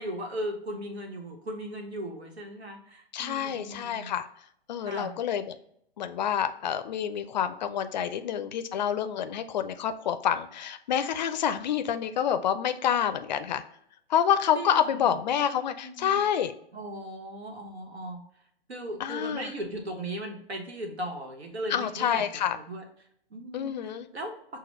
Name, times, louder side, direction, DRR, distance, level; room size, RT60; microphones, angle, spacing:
voice 1, 0.0-4.1 4.8-5.1 14.5-15.2 15.8-16.2 16.7-18.2 18.7-22.3 22.5-22.8 23.3-24.3, right 1 dB, 85° right, 3 dB, 1.2 m, -37 dB
voice 2, 3.1-4.3 4.7-5.6 6.0-13.6 14.1-16.5 19.0-19.5 21.7-22.6 23.5-24.1, left 9 dB, 45° left, 10 dB, 0.4 m, -28 dB
5.9 x 2.2 x 3.1 m, 0.69 s
hypercardioid pair, 125°, 31 cm